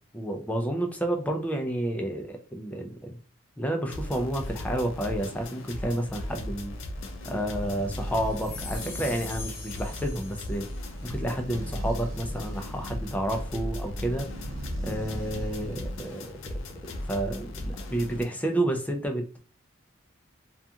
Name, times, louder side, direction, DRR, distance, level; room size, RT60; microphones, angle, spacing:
voice 1, 0.1-3.2 3.6-6.7 7.2-10.6 11.0-14.3 14.8-16.6 16.8-19.4, right 1 dB, 10° left, 3 dB, 0.4 m, -30 dB
sound 1, 3.9-18.2, left 1 dB, 70° left, 0.4 m, -37 dB
sound 2, 6.7-16.1, equal, 80° right, 0.7 m, -41 dB
sound 3, 8.3-10.8, left 5 dB, 45° left, 1.1 m, -42 dB
2.4 x 2.3 x 2.7 m, 0.38 s
head